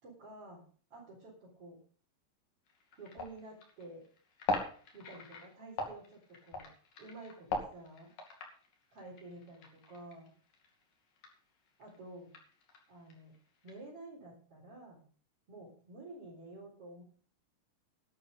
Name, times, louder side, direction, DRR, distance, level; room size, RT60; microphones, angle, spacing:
voice 1, 0.0-0.6 0.9-1.8 3.0-4.0 4.9-6.7 7.0-8.1 8.9-10.3 11.8-12.3 12.9-13.3 13.6-15.0 15.5-17.0, right 2 dB, 45° right, -5 dB, 4.9 m, -50 dB
sound 1, 2.7-11.4 11.6-13.9, left 2 dB, 80° left, 4.3 m, -41 dB
11.5 x 11.0 x 5.3 m, 0.43 s
omnidirectional pair, 3.8 m